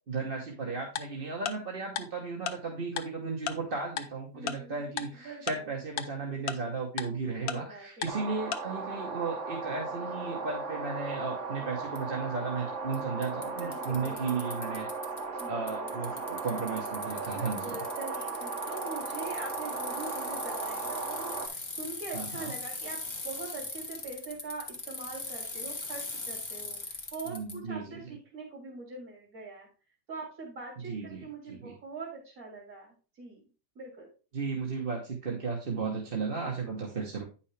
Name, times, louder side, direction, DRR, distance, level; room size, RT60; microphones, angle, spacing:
voice 1, 0.1-14.9 15.4-17.8 22.1-22.5 27.3-28.1 30.9-31.7 34.3-37.2, right 4 dB, 40° right, 0 dB, 1.3 m, -35 dB
Tick-tock, 1.0-1.1 1.5-1.6 2.0-2.1 2.5-2.6 3.0-3.1 3.5-3.6 4.0-4.1 4.5-4.6 5.0-5.1 5.5-5.6 6.0-6.1 6.5-6.6 7.0-7.1 7.5-7.6 8.0-8.1 8.5-8.6, left 9 dB, 80° left, 1.2 m, -32 dB
voice 2, 4.3-5.7 7.4-8.0 13.5-14.4 15.3-16.3 17.3-23.0 23.2-29.7 30.1-33.4 33.7-34.1, right 3 dB, 85° right, -5 dB, 3.0 m, -43 dB
sound 1, 8.1-21.5, right 4 dB, 60° right, 1.5 m, -37 dB
Bicycle, 11.9-12.0 12.9-13.0 13.2-15.4 15.7-27.5, left 3 dB, 30° left, 1.4 m, -40 dB
9.3 x 5.7 x 3.3 m, 0.35 s
omnidirectional pair, 1.5 m